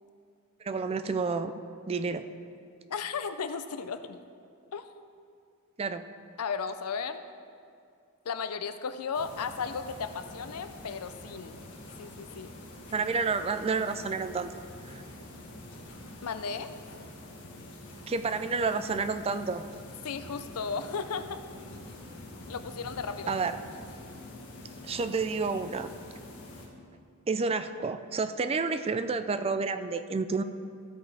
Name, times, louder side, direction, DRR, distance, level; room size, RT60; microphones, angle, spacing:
voice 1, 0.6-1.5 1.9-2.2 5.8-6.1 12.9-14.5 14.9-15.0 18.1-19.6 23.3-23.5 24.8-25.9 27.3-30.4, right 4 dB, 25° right, 11 dB, 0.4 m, -30 dB
voice 2, 2.9-4.2 4.7-4.9 6.4-7.2 8.2-11.6 12.0-12.5 16.2-16.7 20.0-21.4 22.5-23.3, left 5 dB, 80° left, 10 dB, 0.6 m, -35 dB
sound 1, 9.1-26.7, left 1 dB, 60° left, 1.9 m, -46 dB
15.0 x 8.5 x 3.4 m, 2.3 s
head